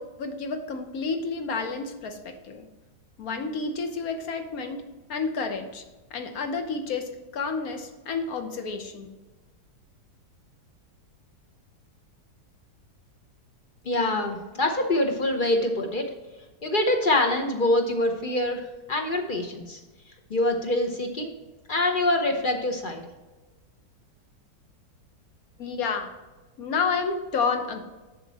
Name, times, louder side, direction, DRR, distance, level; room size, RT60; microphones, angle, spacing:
voice 1, 0.0-2.7 3.2-5.8 6.1-9.1 25.6-26.1 26.6-27.9, left 4 dB, 60° left, 6 dB, 1.3 m, -30 dB
voice 2, 13.8-16.1 16.6-19.8 20.3-21.3 21.7-23.0, left 1 dB, 40° left, 3 dB, 0.7 m, -25 dB
7.6 x 6.7 x 4.1 m, 1.2 s
omnidirectional pair, 1.9 m